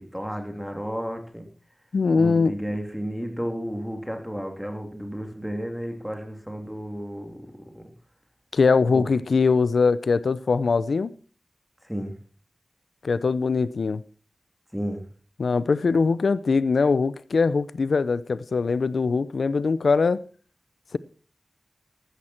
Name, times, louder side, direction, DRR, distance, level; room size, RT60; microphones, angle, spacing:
voice 1, 0.0-1.4 2.1-7.8 8.9-9.0 11.8-12.2 14.7-15.0, equal, 5° right, 3.0 m, -32 dB
voice 2, 1.9-2.5 8.5-11.1 13.0-14.0 15.4-20.2 20.9-21.0, left 4 dB, 90° left, 0.5 m, -22 dB
14.5 x 12.5 x 4.4 m
wide cardioid pair, 75°, 0 cm